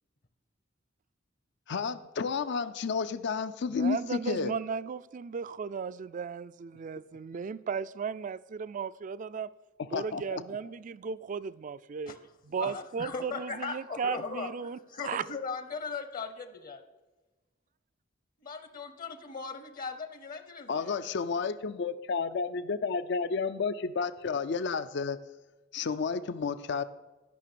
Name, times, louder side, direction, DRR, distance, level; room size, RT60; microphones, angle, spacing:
voice 1, 1.7-4.5 9.8-10.4 20.7-25.2 25.7-26.8, left 5 dB, 65° left, 0.5 m, -31 dB
voice 2, 3.7-9.5 9.9-12.2 12.5-14.8 15.0-15.2, right 6 dB, 40° right, 0.3 m, -35 dB
voice 3, 12.5-16.8 18.4-21.0, left 4 dB, 45° left, 0.9 m, -38 dB
12.0 x 5.8 x 6.8 m
head